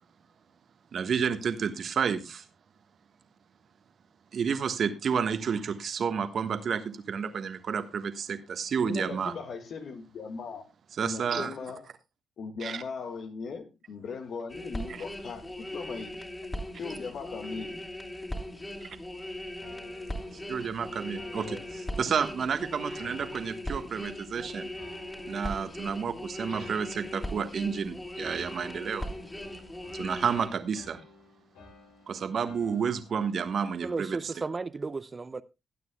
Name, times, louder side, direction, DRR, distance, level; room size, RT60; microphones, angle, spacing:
voice 1, 0.9-2.5 4.3-9.3 11.0-11.5 12.6-12.8 18.8-19.0 20.5-24.7 25.3-29.1 29.9-31.0 32.1-34.2, right 6 dB, 55° right, 1.4 m, -30 dB
voice 2, 8.8-10.7 11.0-11.9 12.4-16.3 16.8-17.9 21.3-21.6, left 5 dB, 60° left, 1.8 m, -39 dB
sound 1, 14.5-30.5, left 1 dB, 20° left, 3.7 m, -39 dB
sound 2, 19.6-22.5 23.0-24.3 24.8-26.1 26.5-28.2 28.6-33.3, left 2 dB, 80° left, 3.0 m, -55 dB
voice 3, 33.8-35.4, right 4 dB, 35° right, 0.6 m, -34 dB
21.5 x 9.3 x 2.3 m
hypercardioid pair, 45°, 0 cm